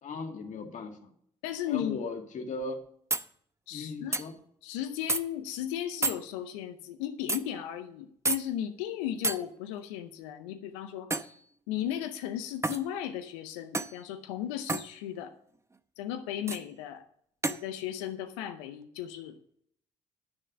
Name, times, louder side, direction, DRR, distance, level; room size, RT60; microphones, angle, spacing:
voice 1, 0.0-1.1 1.7-2.8 3.7-4.4, left 4 dB, 55° left, 4 dB, 2.0 m, -37 dB
voice 2, 1.4-2.0 3.7-4.2 4.6-11.3 11.7-15.3 16.0-17.1 17.5-19.6, left 11 dB, 80° left, 8 dB, 0.7 m, -36 dB
sound 1, 2.6-2.7 3.1-3.3 4.1-4.3 5.1-5.2 6.0-6.2 7.3-7.4 8.3-8.4 9.2-9.4 11.1-11.4 12.6-12.9 13.7-14.0 14.7-14.9 16.5-16.6 17.4-17.6, right 3 dB, 20° right, 0.8 m, -29 dB
11.0 x 6.5 x 6.4 m, 0.66 s
hypercardioid pair, 45°, 15 cm